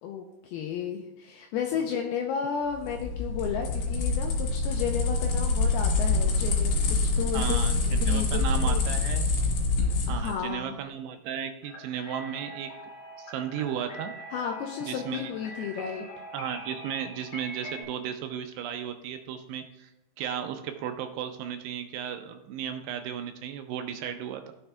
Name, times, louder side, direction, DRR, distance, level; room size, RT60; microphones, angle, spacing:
voice 1, 0.0-8.8 10.1-10.8 14.3-16.1, left 7 dB, 85° left, 2 dB, 2.3 m, -33 dB
sound 1, 2.7-10.4, left 3 dB, 60° left, 2.7 m, -26 dB
voice 2, 7.3-9.3 10.1-12.7 13.2-14.1 14.9-15.3 15.6-15.7 16.3-19.9 20.2-24.5, right 9 dB, 85° right, 7 dB, 2.6 m, -35 dB
sound 2, 11.6-17.8, right 1 dB, 35° left, 2.2 m, -43 dB
15.0 x 6.7 x 2.3 m, 0.94 s
omnidirectional pair, 5.0 m